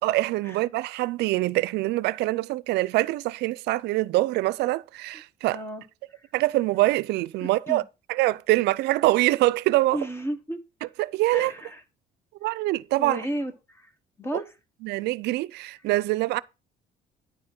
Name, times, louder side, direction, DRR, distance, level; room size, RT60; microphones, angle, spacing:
voice 1, 0.0-5.6 6.3-7.8 8.1-10.0 10.8-11.5 12.4-13.3 14.8-16.4, right 18 dB, 80° right, 0.5 m, -24 dB
voice 2, 5.5-5.8 7.4-7.8 9.9-10.6 11.3-11.8 13.0-13.9 14.2-14.4, equal, 15° left, 1.5 m, -33 dB
9.9 x 4.4 x 6.0 m
cardioid pair, 110°, 17 cm